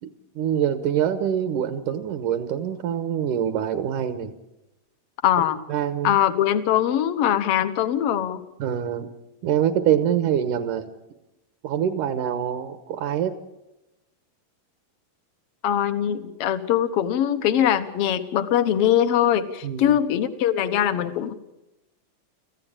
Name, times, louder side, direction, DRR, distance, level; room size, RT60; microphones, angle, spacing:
voice 1, 0.0-4.3 5.7-6.2 8.6-9.1 9.4-10.9 11.6-13.3 19.6-20.0, right 9 dB, 70° right, 9 dB, 2.5 m, -25 dB
voice 2, 5.2-5.6 6.0-8.4 15.6-21.3, left 10 dB, 60° left, 10 dB, 1.7 m, -22 dB
27.0 x 15.5 x 8.9 m, 0.97 s
omnidirectional pair, 4.0 m